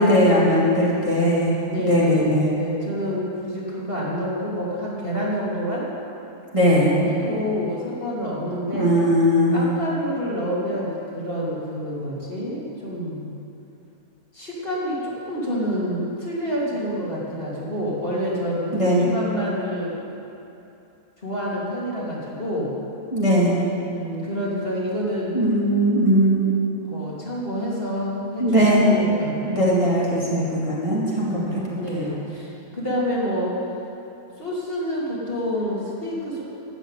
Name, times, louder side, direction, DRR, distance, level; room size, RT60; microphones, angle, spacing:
voice 1, 0.0-1.5 1.8-2.5 6.5-6.9 8.7-9.7 18.7-19.1 23.1-23.6 25.3-26.6 28.4-28.9 29.4-32.1, equal, 20° right, -7 dB, 2.5 m, -19 dB
voice 2, 1.7-5.9 6.9-8.9 9.5-13.3 14.3-20.2 21.2-22.7 23.9-25.4 26.8-28.6 28.9-29.4 31.2-33.6 34.4-36.4, equal, 35° left, -7 dB, 3.1 m, -28 dB
13.0 x 9.2 x 9.0 m, 2.8 s
omnidirectional pair, 1.7 m